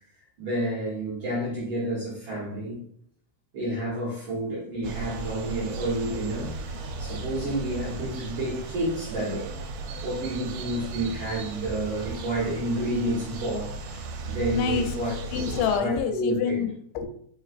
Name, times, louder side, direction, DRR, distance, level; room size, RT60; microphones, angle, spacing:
voice 1, 0.4-2.8 3.5-9.5 10.0-15.2 15.8-16.6, right 1 dB, 65° right, -6 dB, 1.3 m, -30 dB
sound 1, 4.8-15.8, right 3 dB, 80° right, 2.0 m, -36 dB
voice 2, 14.2-17.1, left 7 dB, 85° left, 6 dB, 2.1 m, -28 dB
4.7 x 3.0 x 2.4 m, 0.64 s
omnidirectional pair, 3.7 m